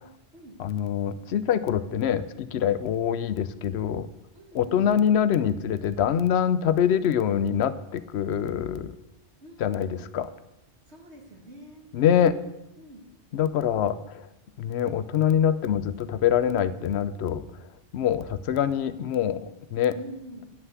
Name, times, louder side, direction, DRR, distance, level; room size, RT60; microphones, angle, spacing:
voice 1, 0.6-4.1 4.5-8.9 9.6-10.3 11.9-12.3 13.3-14.2 14.6-17.4 17.9-19.9, left 9 dB, 80° left, 14 dB, 0.8 m, -24 dB
voice 2, 4.3-4.9 9.4-10.0 10.9-11.9 12.8-13.1 19.9-20.5, right 1 dB, 80° right, 1 dB, 2.1 m, -45 dB
9.1 x 5.6 x 8.0 m, 0.90 s
omnidirectional pair, 1.1 m